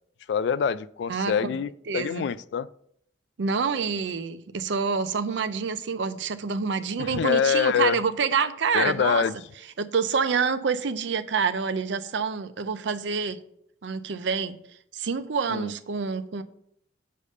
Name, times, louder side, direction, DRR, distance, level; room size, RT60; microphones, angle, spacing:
voice 1, 0.3-2.7 7.0-8.0 8.7-9.4 15.5-15.7, left 7 dB, 70° left, 0.3 m, -25 dB
voice 2, 1.1-1.6 1.9-2.2 3.4-9.2 9.8-13.4 13.8-14.6 14.9-16.4, right 5 dB, 80° right, 0.5 m, -27 dB
6.7 x 5.0 x 5.4 m
head